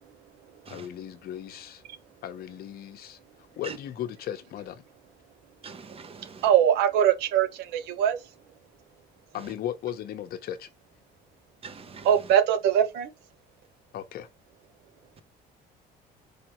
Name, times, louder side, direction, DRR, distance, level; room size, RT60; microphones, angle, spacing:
voice 1, 0.7-1.8 2.2-3.2 3.6-4.8 9.3-10.7 13.9-14.3, left 11 dB, 65° left, 0.8 m, -36 dB
voice 2, 5.6-6.4 11.6-12.1, right 5 dB, 35° right, 0.9 m, -44 dB
voice 3, 6.4-8.2 12.0-13.1, right 9 dB, 90° right, 1.0 m, -22 dB
5.0 x 3.3 x 3.0 m
cardioid pair, 110°, 17 cm